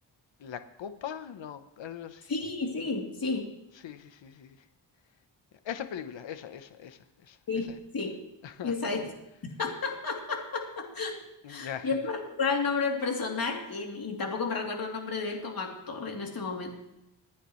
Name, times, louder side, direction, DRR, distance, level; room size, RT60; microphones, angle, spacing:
voice 1, 0.4-2.3 3.8-4.6 5.6-7.4 7.7-7.8 8.4-8.7 11.4-12.0, left 9 dB, 80° left, 10 dB, 1.0 m, -40 dB
voice 2, 2.3-3.4 7.5-8.1 8.6-9.1 9.6-11.1 11.5-16.7, left 4 dB, 50° left, 0 dB, 3.2 m, -32 dB
26.0 x 9.9 x 3.2 m, 0.90 s
cardioid pair, 90°, 44 cm